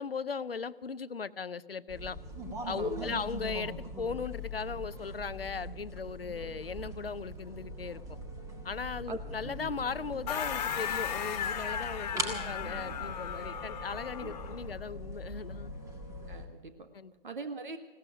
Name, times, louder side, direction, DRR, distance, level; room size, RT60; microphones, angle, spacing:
voice 1, 0.0-2.2 2.7-8.2 8.6-15.7 16.9-17.1, left 5 dB, 80° left, 17 dB, 0.7 m, -38 dB
sound 1, 1.9-16.5, equal, 10° right, 1.7 m, -41 dB
voice 2, 2.8-3.1 9.1-9.2 14.2-14.3 16.3-16.9 17.2-17.8, right 3 dB, 55° right, 8 dB, 1.7 m, -41 dB
sound 2, 10.3-14.7, left 8 dB, 45° left, 1.5 m, -36 dB
17.0 x 13.5 x 6.1 m, 1.3 s
figure-of-eight pair, 125°, 29 cm